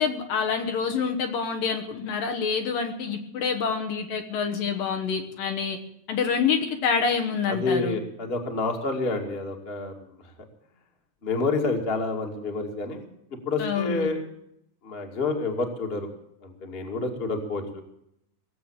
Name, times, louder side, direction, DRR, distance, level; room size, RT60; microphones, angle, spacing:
voice 1, 0.0-5.8 6.1-8.0 13.6-14.1, left 6 dB, 65° left, 5 dB, 2.8 m, -27 dB
voice 2, 7.5-9.9 11.2-13.1 13.4-14.2 14.8-16.1 16.4-17.8, left 3 dB, 20° left, 3 dB, 1.6 m, -28 dB
19.0 x 8.1 x 8.7 m, 0.76 s
omnidirectional pair, 4.8 m